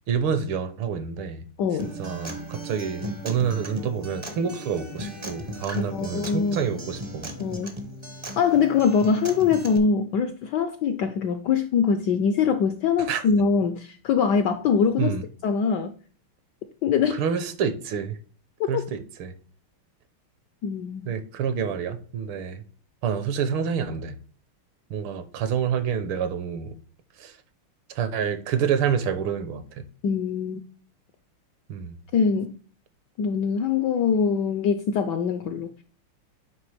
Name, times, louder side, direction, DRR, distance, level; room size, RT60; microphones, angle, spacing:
voice 1, 0.1-1.4 1.8-7.3 13.0-13.2 15.0-15.2 17.1-18.2 18.7-19.3 21.0-22.6 23.0-24.2 24.9-26.8 27.2-27.4 27.9-29.8 31.7-32.0, right 7 dB, 75° right, 1.6 m, -28 dB
voice 2, 1.6-1.9 5.8-6.7 7.4-7.8 8.4-15.1 15.4-15.9 16.8-17.2 18.7-18.8 20.6-21.1 30.0-30.6 32.1-32.5 33.2-35.7, left 6 dB, 75° left, 1.0 m, -23 dB
Acoustic guitar, 1.8-9.8, right 1 dB, 45° right, 0.3 m, -37 dB
9.2 x 3.3 x 3.3 m
omnidirectional pair, 2.4 m